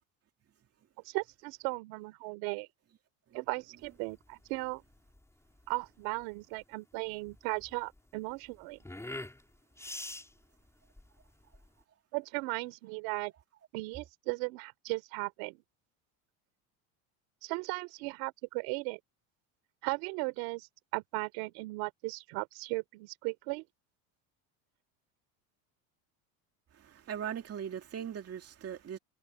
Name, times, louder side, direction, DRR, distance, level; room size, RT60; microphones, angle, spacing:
voice 1, 1.1-2.7 3.3-4.8 5.7-8.8 12.1-13.3 13.7-15.6 17.4-19.0 19.8-20.7 20.9-23.6, right 28 dB, 75° right, 4.1 m, -36 dB
sound 1, 3.8-11.8, left 1 dB, 5° left, 5.8 m, -47 dB
voice 2, 26.7-29.0, right 9 dB, 35° right, 2.5 m, -40 dB
supercardioid pair, 110°, 42 cm